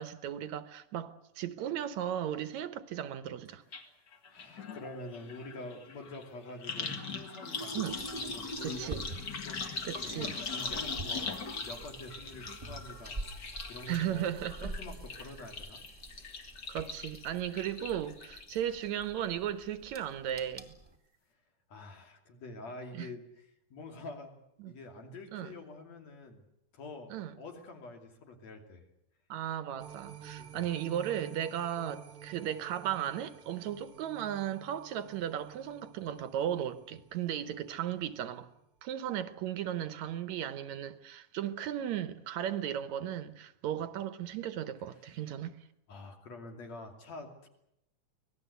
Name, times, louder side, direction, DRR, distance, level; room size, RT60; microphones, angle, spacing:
voice 1, 0.0-3.6 7.7-8.0 8.6-9.0 9.8-10.4 13.9-14.7 16.7-20.8 22.9-23.1 24.6-24.7 25.3-25.5 27.1-27.3 29.3-38.5 38.8-45.6, right 10 dB, 75° right, 2.3 m, -36 dB
sound 1, 3.7-3.8 4.1-18.7 19.1-19.6 19.9-20.0, left 4 dB, 40° left, 2.1 m, -41 dB
voice 2, 3.8-7.8 8.1-9.0 9.4-9.6 10.0-13.2 13.7-14.3 14.6-15.8 21.7-23.2 23.7-26.5 26.7-28.9 30.4-30.6 45.9-47.5, left 2 dB, 60° left, 4.0 m, -47 dB
sound 2, 7.9-21.0, right 2 dB, 15° right, 2.0 m, -47 dB
sound 3, 29.8-38.2 38.6-38.7, right 9 dB, 55° right, 1.8 m, -52 dB
25.0 x 18.5 x 8.1 m
omnidirectional pair, 3.4 m